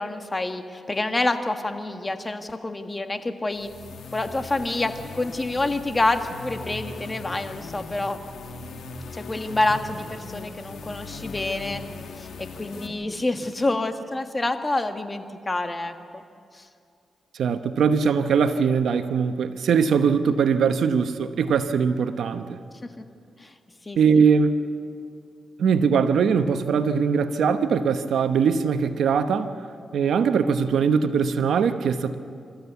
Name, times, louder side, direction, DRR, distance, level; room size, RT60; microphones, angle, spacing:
voice 1, 0.0-3.7 4.1-8.2 9.1-11.8 12.2-15.9 16.5-16.7 23.0-23.1 23.4-23.5 23.8-24.0, left 2 dB, 25° left, 7 dB, 1.5 m, -27 dB
sound 1, 3.5-12.9, left 3 dB, 85° left, 2.1 m, -39 dB
voice 2, 17.4-22.6 24.0-24.5 25.6-29.6 29.9-32.2, right 6 dB, 85° right, 9 dB, 1.0 m, -21 dB
26.5 x 14.5 x 8.2 m, 2.4 s
cardioid pair, 70°, 0 cm